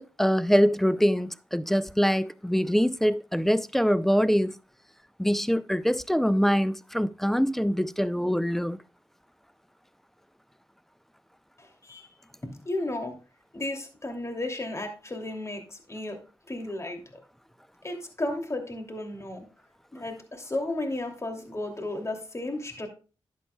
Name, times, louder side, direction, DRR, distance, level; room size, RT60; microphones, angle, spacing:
voice 1, 0.0-4.6 5.2-8.8, equal, 5° left, 0.5 m, -24 dB
voice 2, 11.6-12.1 12.4-13.2 13.5-16.2 16.5-17.2 17.8-19.5 19.9-22.9, left 2 dB, 30° left, 2.7 m, -34 dB
12.0 x 8.4 x 2.3 m
cardioid pair, 50°, 10 cm